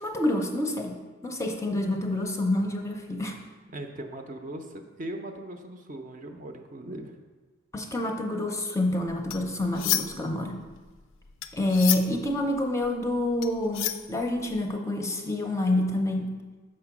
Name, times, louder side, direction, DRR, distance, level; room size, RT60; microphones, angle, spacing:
voice 1, 0.0-1.0 1.2-3.4 7.7-10.6 11.5-16.3, left 1 dB, 15° left, 2 dB, 0.6 m, -27 dB
voice 2, 3.7-7.2, right 1 dB, 40° right, 5 dB, 0.6 m, -39 dB
sound 1, 9.1-10.3 10.7-14.7, left 12 dB, 70° left, 0.4 m, -31 dB
6.4 x 4.4 x 5.9 m, 1.3 s
head